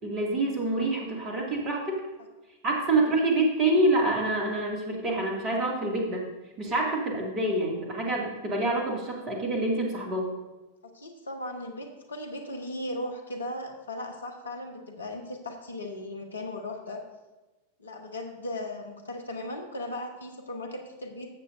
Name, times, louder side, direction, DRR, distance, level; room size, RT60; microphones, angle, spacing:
voice 1, 0.0-2.0 2.6-6.3 6.6-10.3, right 2 dB, 30° right, 0 dB, 2.3 m, -26 dB
voice 2, 10.8-17.0 17.8-21.3, left 1 dB, 75° left, 4 dB, 1.2 m, -37 dB
13.5 x 8.2 x 2.6 m, 1.1 s
figure-of-eight pair, 90°, 0 cm